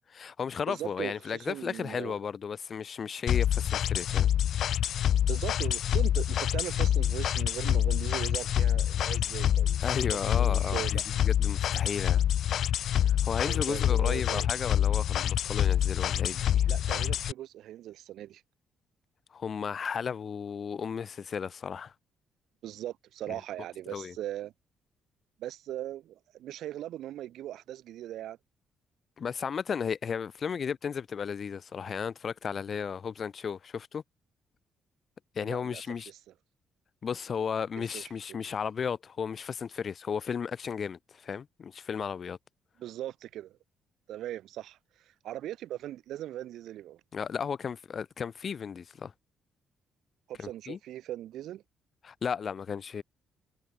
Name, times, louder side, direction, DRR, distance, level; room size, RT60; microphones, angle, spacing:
voice 1, 0.1-4.3 9.8-12.2 13.0-16.7 19.3-21.9 23.9-24.1 29.2-34.0 35.4-36.1 37.0-42.4 47.1-49.1 50.4-50.8 52.0-53.0, left 6 dB, 50° left, 1.9 m, -34 dB
voice 2, 0.7-2.2 5.3-11.0 13.4-14.5 16.7-18.4 22.6-24.5 25.4-28.4 35.4-36.2 37.8-38.5 42.8-43.6 44.1-47.0 50.3-51.6, right 13 dB, 80° right, 2.0 m, -39 dB
sound 1, 3.3-17.3, left 10 dB, 70° left, 1.1 m, -26 dB
cardioid pair, 90°, 0 cm